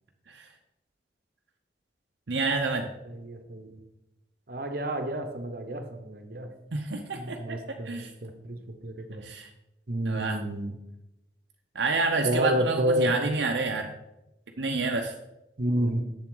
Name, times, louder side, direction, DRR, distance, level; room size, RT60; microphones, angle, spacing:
voice 1, 2.3-2.9 6.7-7.6 7.8-8.1 9.2-9.5 10.1-10.4 11.7-13.9 14.6-15.1, right 3 dB, 75° right, 3 dB, 0.7 m, -28 dB
voice 2, 3.1-3.7 4.5-6.5 7.1-9.2 9.9-10.7 12.2-13.1 15.6-16.1, right 1 dB, 55° right, 6 dB, 1.0 m, -30 dB
7.4 x 7.3 x 3.9 m, 0.92 s
head